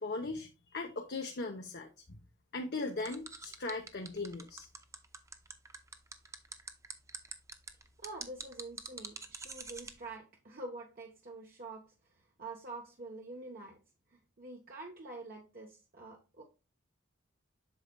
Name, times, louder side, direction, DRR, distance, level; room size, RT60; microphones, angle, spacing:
voice 1, 0.0-2.2 2.5-4.7, left 3 dB, 55° left, 0.8 m, -39 dB
sound 1, 3.0-9.9, right 4 dB, 15° right, 0.6 m, -45 dB
voice 2, 8.0-11.9 12.4-13.8 14.1-16.4, right 2 dB, 45° right, 1.0 m, -46 dB
8.1 x 6.3 x 2.2 m
head